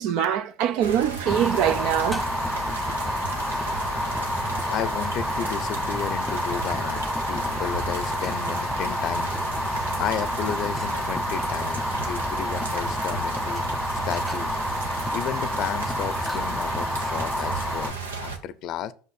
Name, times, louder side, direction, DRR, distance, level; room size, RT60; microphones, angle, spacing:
voice 1, 0.0-2.3 17.1-17.2, right 10 dB, 60° right, 0.6 m, -24 dB
sound 1, 0.8-18.4, right 4 dB, 90° right, 1.1 m, -34 dB
Fire, 1.3-17.9, left 1 dB, 5° left, 0.4 m, -29 dB
voice 2, 4.7-13.6 14.0-14.6 15.1-18.9, left 10 dB, 50° left, 0.6 m, -33 dB
6.1 x 5.7 x 4.2 m
hypercardioid pair, 80°, 0 cm